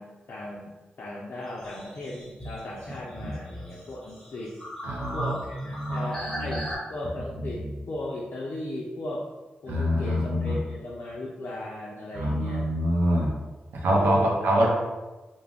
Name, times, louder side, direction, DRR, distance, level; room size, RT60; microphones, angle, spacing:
voice 1, 0.0-4.6 5.1-9.3 9.6-12.7 13.9-14.7, left 1 dB, 60° left, -4 dB, 0.4 m, -36 dB
sound 1, 1.5-6.8, equal, 10° left, 1.1 m, -39 dB
voice 2, 4.8-5.3 5.7-6.6 9.7-10.6 12.1-13.3 13.7-14.7, equal, 80° right, -2 dB, 0.4 m, -25 dB
2.3 x 2.0 x 3.3 m, 1.2 s
cardioid pair, 50°, 4 cm